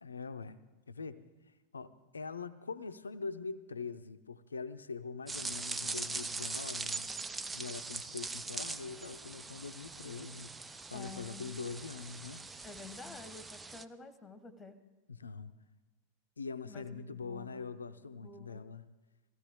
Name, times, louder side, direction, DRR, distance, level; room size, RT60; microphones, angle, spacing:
voice 1, 0.0-0.6 0.9-1.2 1.7-7.1 7.5-10.6 10.9-12.5 15.1-15.5 16.4-18.8, left 4 dB, 75° left, 12 dB, 0.6 m, -43 dB
sound 1, 5.3-13.8, right 3 dB, 10° right, 0.4 m, -41 dB
voice 2, 10.9-11.5 12.6-14.8 16.6-17.6 18.0-18.6, left 4 dB, 15° left, 11 dB, 1.2 m, -50 dB
18.0 x 15.5 x 3.5 m, 1.2 s
figure-of-eight pair, 90°, 0 cm